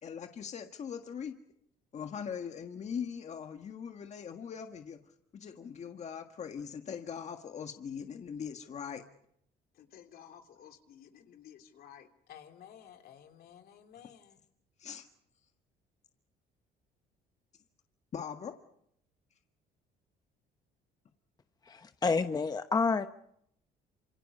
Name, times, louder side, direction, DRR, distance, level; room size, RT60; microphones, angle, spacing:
voice 1, 0.0-1.4 1.9-5.0 5.3-9.0 14.8-15.1 18.1-18.5, left 7 dB, 40° left, 6 dB, 1.6 m, -41 dB
voice 2, 9.7-14.4, left 9 dB, 65° left, 5 dB, 3.1 m, -54 dB
voice 3, 21.6-23.1, left 4 dB, 25° left, 9 dB, 0.9 m, -29 dB
28.0 x 26.5 x 5.5 m, 0.74 s
cardioid pair, 110°, 17 cm